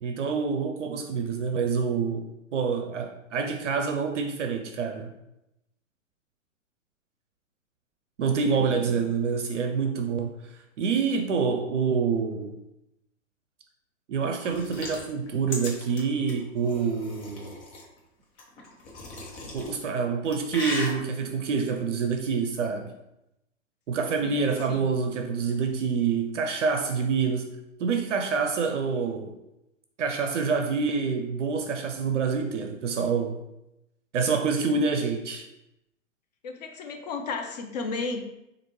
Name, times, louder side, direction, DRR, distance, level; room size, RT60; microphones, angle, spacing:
voice 1, 0.0-5.1 8.2-10.3 10.8-12.6 14.1-17.5 19.5-22.9 23.9-27.5 27.8-29.4 30.0-33.4 34.1-35.4, right 5 dB, 65° right, 5 dB, 0.5 m, -27 dB
voice 2, 8.5-9.0 24.2-24.4 24.7-25.0 36.4-38.3, left 4 dB, 35° left, 4 dB, 0.4 m, -34 dB
sound 1, 14.4-17.8 18.4-19.7 20.1-20.9, left 3 dB, 55° left, 1.1 m, -37 dB
4.1 x 2.5 x 3.0 m, 0.88 s
figure-of-eight pair, 115°, 40 cm